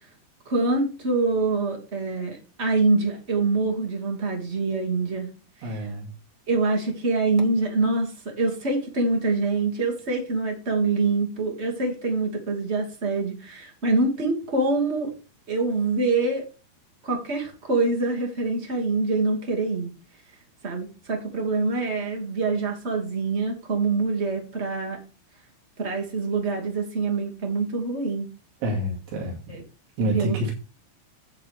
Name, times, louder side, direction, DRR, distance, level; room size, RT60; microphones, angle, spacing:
voice 1, 0.4-5.3 5.6-5.9 6.5-15.1 15.5-16.5 17.0-19.9 20.6-25.0 25.8-28.3 29.5-29.6 30.1-30.4, right 3 dB, 50° right, 0.7 m, -25 dB
voice 2, 5.6-6.1 28.6-29.4 30.0-30.5, right 1 dB, 80° right, 4.8 m, -27 dB
10.5 x 8.1 x 3.5 m
omnidirectional pair, 5.3 m